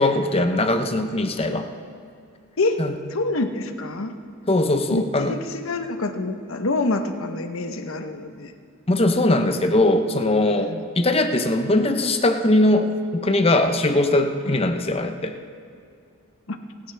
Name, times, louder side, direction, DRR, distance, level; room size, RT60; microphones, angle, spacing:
voice 1, 0.0-1.7 2.8-2.9 4.5-5.4 8.9-15.3, left 2 dB, 30° left, 7 dB, 0.8 m, -20 dB
voice 2, 3.1-4.1 4.9-8.5 10.7-10.8 16.5-16.6, left 2 dB, 80° left, 7 dB, 1.0 m, -26 dB
29.5 x 10.5 x 3.4 m, 2.4 s
head